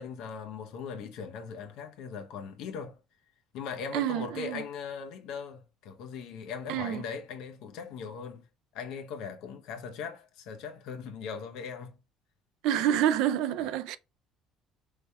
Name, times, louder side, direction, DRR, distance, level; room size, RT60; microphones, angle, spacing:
voice 1, 0.0-3.0 3.5-8.4 8.7-12.0, left 6 dB, 65° left, 0.7 m, -39 dB
voice 2, 3.9-4.6 6.7-7.0 12.6-14.0, right 11 dB, 70° right, 0.3 m, -28 dB
5.4 x 3.3 x 2.2 m
cardioid pair, 175°, 0 cm